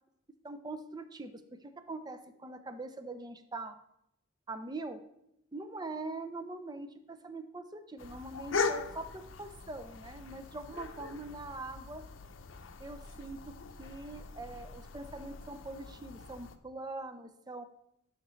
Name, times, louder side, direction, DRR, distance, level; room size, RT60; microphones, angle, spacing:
voice 1, 0.4-3.7 4.5-5.0 5.5-12.0 12.8-13.5 13.8-17.6, right 2 dB, 20° right, 9 dB, 0.5 m, -43 dB
sound 1, 8.0-16.6, left 4 dB, 80° left, 0.6 m, -40 dB
11.5 x 5.7 x 3.2 m, 0.82 s
head